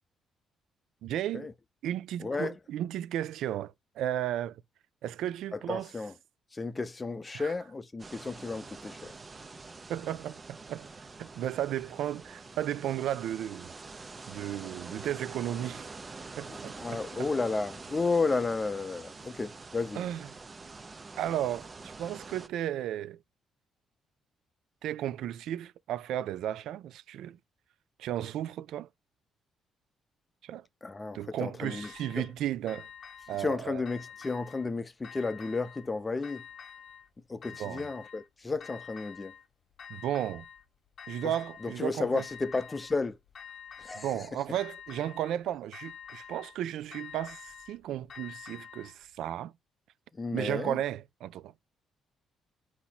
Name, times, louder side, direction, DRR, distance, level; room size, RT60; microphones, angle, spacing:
voice 1, 1.0-1.5 1.8-4.6 5.0-5.9 7.3-7.5 9.9-13.7 14.3-15.9 16.4-17.3 19.9-20.3 21.2-23.2 24.8-27.4 28.0-28.9 30.4-30.7 31.1-32.9 33.3-33.8 37.6-37.9 39.9-40.4 41.1-42.3 43.9-49.5 50.3-51.5, right 11 dB, 80° right, 0.4 m, -34 dB
voice 2, 2.2-2.5 5.7-6.1 6.5-9.1 16.5-20.0 30.8-32.3 33.4-36.4 37.3-39.3 41.2-41.3 41.6-43.2 43.8-44.3 50.2-50.8, left 3 dB, 25° left, 0.7 m, -32 dB
sound 1, 8.0-22.5, right 3 dB, 30° right, 0.7 m, -46 dB
sound 2, 31.6-32.3 32.7-33.5 33.8-34.7 35.0-35.9 36.2-37.1 37.4-38.3 38.6-39.5 39.8-40.6 41.0-41.8 42.2-43.0 43.3-44.2 44.5-45.4 45.7-46.6 46.9-49.0, left 7 dB, 55° left, 1.2 m, -48 dB
4.0 x 2.9 x 4.2 m
cardioid pair, 90°, 0 cm